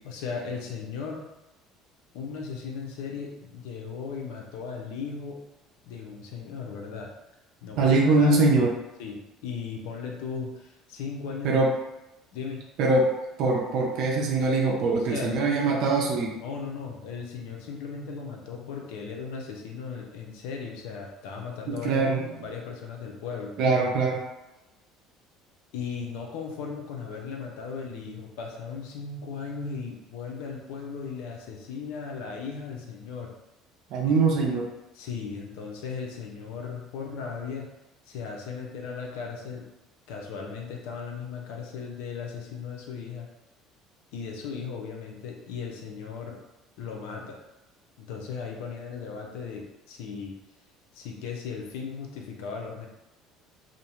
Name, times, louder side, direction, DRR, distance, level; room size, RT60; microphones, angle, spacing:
voice 1, 0.0-1.2 2.1-5.4 5.8-7.1 7.6-8.4 9.0-11.6 12.3-12.6 15.1-15.3 16.4-23.6 25.7-33.3 34.1-34.2 34.9-37.7 38.0-39.6 40.1-43.3 44.1-46.4 46.8-47.4 48.0-50.3 50.9-52.9, left 5 dB, 85° left, 0 dB, 0.5 m, -37 dB
voice 2, 7.8-8.7 11.4-11.7 12.8-13.1 13.4-16.4 21.7-22.2 23.6-24.2 33.9-34.7, right 3 dB, 65° right, -1 dB, 0.5 m, -22 dB
2.5 x 2.0 x 2.9 m, 0.97 s
cardioid pair, 115°, 0 cm